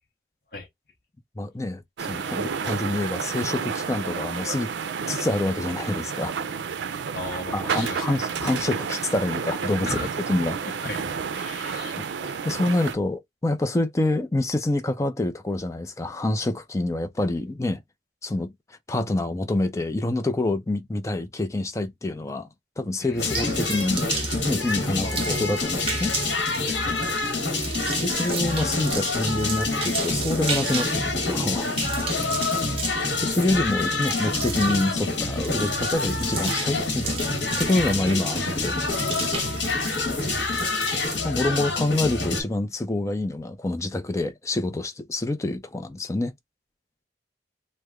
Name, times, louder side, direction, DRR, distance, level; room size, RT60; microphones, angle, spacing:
voice 1, 1.4-4.7 5.1-6.3 7.5-10.6 12.0-17.8 18.2-18.5 18.9-22.5 22.8-26.1 28.0-31.7 33.0-38.8 40.7-40.8 41.1-46.3, left 2 dB, 15° left, 0.4 m, -27 dB
sound 1, 2.0-13.0, right 6 dB, 85° right, 0.4 m, -30 dB
voice 2, 7.1-8.5 9.8-10.1 10.8-12.0 23.0-23.4 25.0-25.2 26.6-27.2 32.3-32.6 39.5-40.2, left 2 dB, 55° left, 0.8 m, -38 dB
sound 2, 23.2-42.4, left 3 dB, 80° left, 1.2 m, -27 dB
sound 3, 23.2-41.2, right 4 dB, 35° right, 1.1 m, -35 dB
3.0 x 2.1 x 3.5 m
head